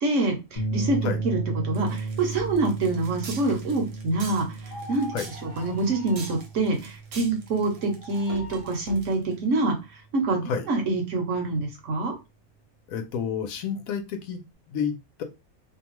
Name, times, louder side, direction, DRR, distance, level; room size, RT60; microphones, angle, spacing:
voice 1, 0.0-12.1, right 2 dB, 65° right, 3 dB, 1.1 m, -26 dB
sound 1, 0.6-9.0, right 3 dB, 30° left, 0.7 m, -35 dB
sound 2, 1.7-9.4, right 4 dB, 85° right, 1.2 m, -43 dB
sound 3, 4.6-6.5 7.8-8.8, left 1 dB, 50° left, 1.0 m, -43 dB
voice 2, 12.9-14.4 14.7-15.2, left 7 dB, 75° left, 7 dB, 1.0 m, -30 dB
2.7 x 2.2 x 2.9 m, 0.26 s
omnidirectional pair, 1.5 m